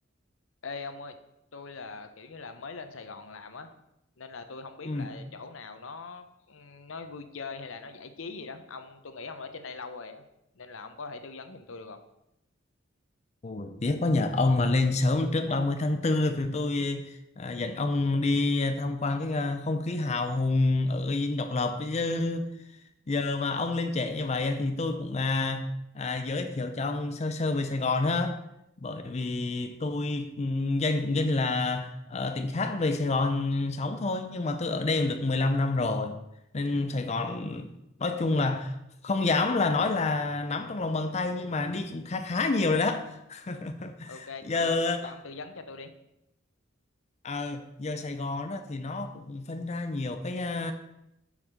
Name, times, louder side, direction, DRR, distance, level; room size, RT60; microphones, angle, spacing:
voice 1, 0.6-1.2 1.5-3.7 4.2-10.2 10.5-12.0 44.1-44.8 45.0-45.9, left 4 dB, 85° left, 0.8 m, -42 dB
voice 2, 13.4-22.5 23.1-28.4 28.8-36.2 36.5-37.7 38.0-38.8 39.0-45.1 47.2-50.7, left 3 dB, 35° left, 0.5 m, -28 dB
7.2 x 5.0 x 6.6 m
head